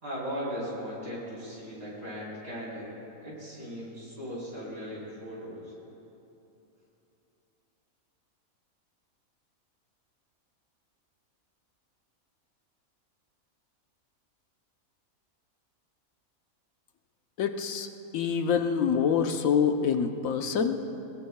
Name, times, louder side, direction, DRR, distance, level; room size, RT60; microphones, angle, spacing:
voice 1, 0.0-2.9 3.2-5.7, equal, 70° right, -7 dB, 4.4 m, -38 dB
voice 2, 17.4-17.9 18.1-20.8, left 7 dB, 70° left, 6 dB, 1.2 m, -26 dB
22.0 x 20.5 x 2.3 m, 2.9 s
omnidirectional pair, 1.5 m